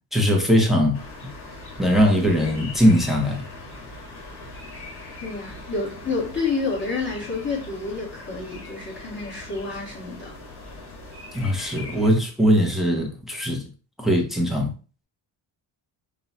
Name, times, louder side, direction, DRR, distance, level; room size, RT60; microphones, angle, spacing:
voice 1, 0.1-1.0 1.8-3.4 11.3-13.6 14.0-14.7, equal, ahead, 0.8 m, -20 dB
sound 1, 0.9-12.1, left 2 dB, 55° left, 2.1 m, -41 dB
voice 2, 5.2-10.3, left 4 dB, 25° left, 1.4 m, -29 dB
5.5 x 2.3 x 4.1 m
wide cardioid pair, 160°, 48 cm